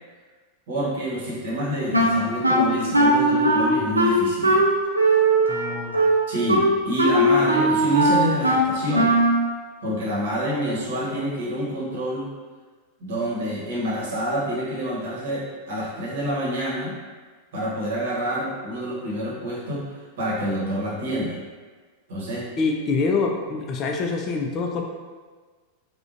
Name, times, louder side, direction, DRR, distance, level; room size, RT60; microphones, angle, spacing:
voice 1, 0.7-4.6 6.3-9.1 9.8-12.3 13.0-16.9 17.5-19.9 20.2-21.4 22.1-22.5, equal, 55° right, -6 dB, 0.9 m, -27 dB
Wind instrument woodwind instrument, 1.9-9.5, right 1 dB, 85° right, 0.4 m, -19 dB
voice 2, 5.5-6.0 22.6-24.8, left 4 dB, 30° left, 2 dB, 0.3 m, -25 dB
3.6 x 2.1 x 2.5 m, 1.4 s
figure-of-eight pair, 90°, 0 cm